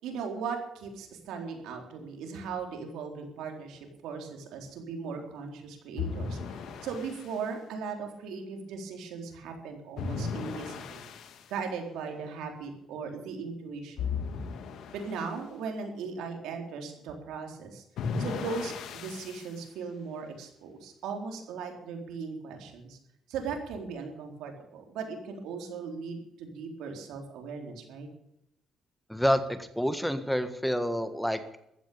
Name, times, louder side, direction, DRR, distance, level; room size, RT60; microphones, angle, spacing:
voice 1, 0.0-11.0 11.5-14.2 14.9-17.8 18.2-23.0 23.3-28.1, right 5 dB, 90° right, 3 dB, 4.0 m, -38 dB
sound 1, 6.0-7.4 10.0-11.5 14.0-15.3 18.0-19.5, left 5 dB, 75° left, 2.1 m, -36 dB
voice 2, 29.1-31.6, equal, ahead, 10 dB, 1.6 m, -28 dB
15.0 x 13.0 x 7.1 m, 0.80 s
cardioid pair, 90°, 0 cm